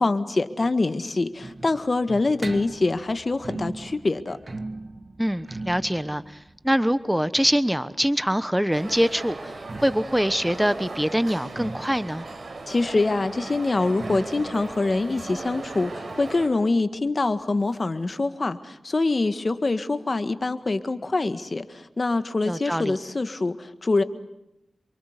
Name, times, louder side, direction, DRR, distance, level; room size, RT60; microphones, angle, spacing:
voice 1, 0.0-4.4 12.7-24.0, left 3 dB, 45° left, 11 dB, 1.8 m, -25 dB
sound 1, 0.6-8.3 9.4-16.8 17.1-17.2 17.4-17.5 18.2-18.3, right 2 dB, 40° right, 1.6 m, -40 dB
voice 2, 5.2-6.4 6.6-9.5 9.8-12.3 22.4-23.0, equal, 5° right, 14 dB, 1.1 m, -24 dB
sound 2, 8.7-16.5, right 2 dB, 60° right, 5.7 m, -37 dB
27.5 x 24.0 x 8.2 m, 0.87 s
cardioid pair, 60°, 0 cm